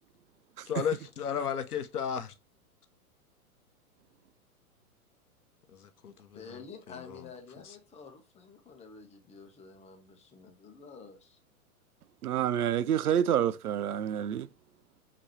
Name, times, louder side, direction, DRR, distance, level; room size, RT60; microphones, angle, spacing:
voice 1, 0.7-2.3 5.7-6.6 6.9-7.3 7.6-7.7, left 8 dB, 85° left, 0.8 m, -34 dB
voice 2, 6.3-11.4, left 5 dB, 15° left, 1.0 m, -49 dB
voice 3, 12.2-14.5, right 10 dB, 85° right, 0.5 m, -28 dB
5.5 x 3.0 x 3.1 m
hypercardioid pair, 110°, 44 cm